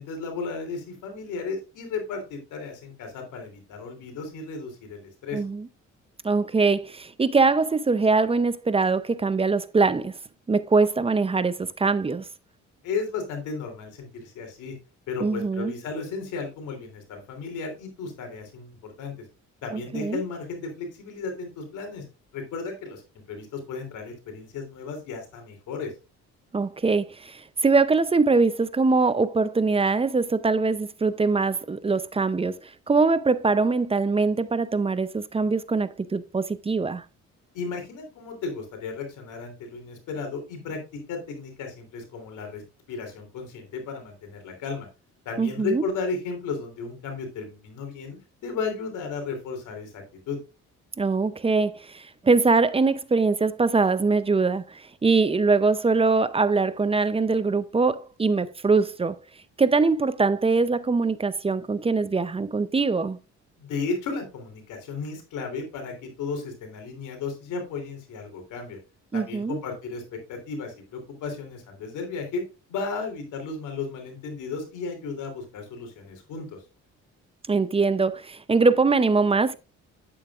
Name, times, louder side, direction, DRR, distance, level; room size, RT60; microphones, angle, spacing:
voice 1, 0.0-5.4 12.8-14.7 15.1-19.1 19.6-22.0 22.3-23.0 23.3-25.9 37.5-42.6 42.9-44.9 45.2-50.4 63.6-68.8 69.1-72.4 72.7-76.6, left 4 dB, 90° left, 3.2 m, -34 dB
voice 2, 5.3-5.7 6.2-10.1 10.5-12.2 15.2-15.7 19.7-20.2 26.5-32.6 32.9-37.0 45.4-45.8 51.0-59.2 59.6-63.2 69.1-69.6 77.5-79.5, right 4 dB, 20° right, 0.6 m, -22 dB
8.8 x 8.6 x 2.4 m
cardioid pair, 90°, 30 cm